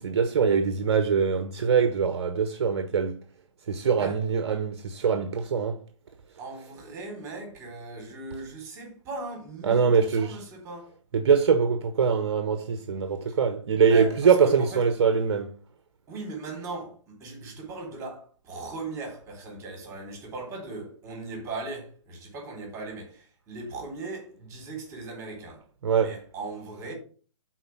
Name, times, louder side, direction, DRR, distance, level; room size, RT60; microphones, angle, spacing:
voice 1, 0.0-3.2 3.7-5.8 9.6-10.4 11.1-15.5 25.8-26.1, right 6 dB, 55° right, 0.9 m, -23 dB
voice 2, 6.4-10.9 13.3-13.4 13.8-14.9 16.1-25.6 25.9-26.9, right 3 dB, 15° right, 3.6 m, -38 dB
8.1 x 4.4 x 5.9 m
figure-of-eight pair, 135°, 16 cm